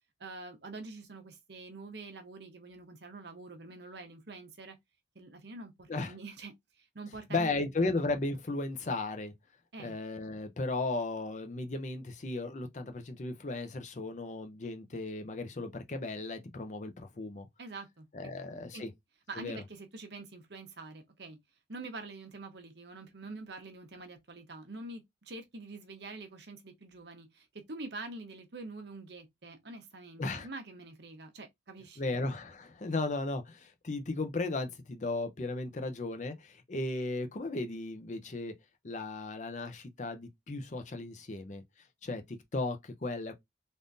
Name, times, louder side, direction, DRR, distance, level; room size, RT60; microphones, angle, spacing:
voice 1, 0.2-4.8 5.1-7.7 9.7-9.9 17.6-18.3 18.7-18.8 19.3-21.4 21.7-32.2, right 3 dB, 65° right, 0.9 m, -46 dB
voice 2, 7.3-9.3 9.8-17.5 18.1-18.9 19.4-19.6 30.2-30.5 32.0-38.5 38.8-41.6 42.0-43.3, left 2 dB, 40° left, 0.5 m, -35 dB
3.5 x 2.5 x 2.6 m
head